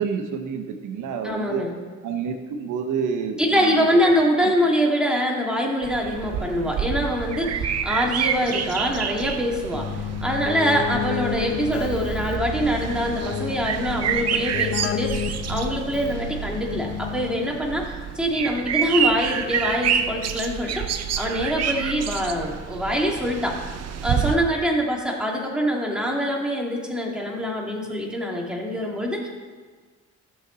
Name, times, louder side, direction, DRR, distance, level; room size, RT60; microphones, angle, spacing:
voice 1, 0.0-1.6 2.0-4.2, right 6 dB, 85° right, 6 dB, 1.0 m, -28 dB
voice 2, 1.2-1.7 3.4-9.9 10.2-23.6 24.0-29.3, equal, 5° right, -2 dB, 2.4 m, -24 dB
sound 1, 5.8-24.4, right 7 dB, 55° right, 0.8 m, -28 dB
Keyboard (musical), 9.7-17.6, left 9 dB, 50° left, 0.9 m, -31 dB
16.5 x 6.7 x 4.0 m, 1.5 s
cardioid pair, 90°, 30 cm